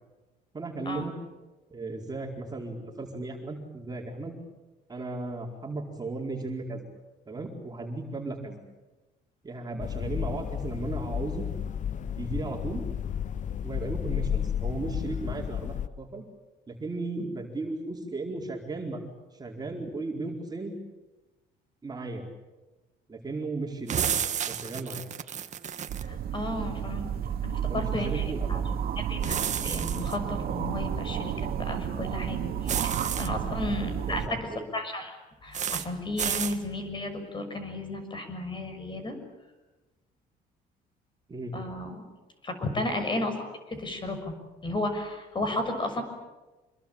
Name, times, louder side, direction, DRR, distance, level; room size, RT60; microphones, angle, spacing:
voice 1, 0.5-1.1 1.7-4.4 4.9-6.9 7.3-8.6 9.4-11.5 12.2-12.8 13.6-16.2 16.7-19.0 19.3-20.7 21.8-22.2 23.1-23.9 24.5-25.1 27.4-28.6 33.4-33.7 34.1-34.6 41.3-41.5, right 3 dB, 25° right, 1 dB, 4.5 m, -36 dB
sound 1, 9.8-15.9, left 9 dB, 45° left, 0.9 m, -32 dB
sound 2, 23.9-26.1 29.2-30.2 32.7-33.3 35.5-35.9 36.2-36.6, right 8 dB, 45° right, 1.7 m, -31 dB
Tornado Left To Right, 25.9-34.3, right 9 dB, 60° right, 2.4 m, -31 dB
voice 2, 26.1-27.1 27.4-28.6 29.0-34.4 34.7-39.2 41.5-42.0 42.4-44.3 44.6-46.0, left 2 dB, 30° left, 7 dB, 6.4 m, -33 dB
27.0 x 22.0 x 8.9 m, 1.1 s
cardioid pair, 110°, 17 cm